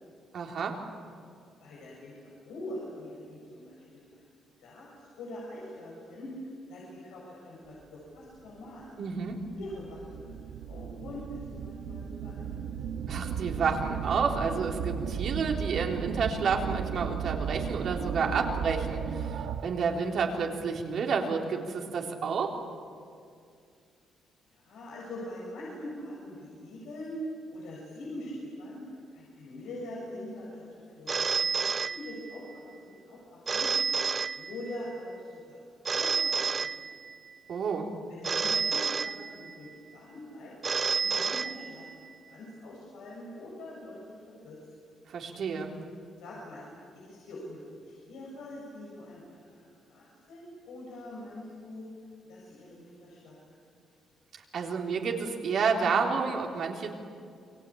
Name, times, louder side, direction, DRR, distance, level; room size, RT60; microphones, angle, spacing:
voice 1, 0.3-0.8 9.0-9.4 13.1-22.5 37.5-37.9 45.1-45.7 54.5-57.0, right 5 dB, 60° right, 1 dB, 3.7 m, -30 dB
voice 2, 1.6-4.2 4.6-4.9 5.2-6.3 6.7-8.9 9.6-10.2 10.7-12.3 24.5-27.2 27.5-28.8 29.1-31.5 31.8-33.7 34.3-35.6 35.9-36.3 36.6-36.7 38.1-40.5 40.9-41.9 42.3-44.6 46.2-46.6 46.9-51.8 52.3-53.3, left 1 dB, 90° left, -5 dB, 7.4 m, -43 dB
sound 1, 8.5-8.6 9.3-19.9, right 7 dB, 85° right, 1.4 m, -35 dB
Telephone, 31.1-32.6 33.5-35.0 35.9-37.4 38.2-39.7 40.6-42.1, right 5 dB, 35° right, 0.6 m, -30 dB
29.0 x 23.0 x 8.7 m, 2.3 s
cardioid pair, 90°, 0 cm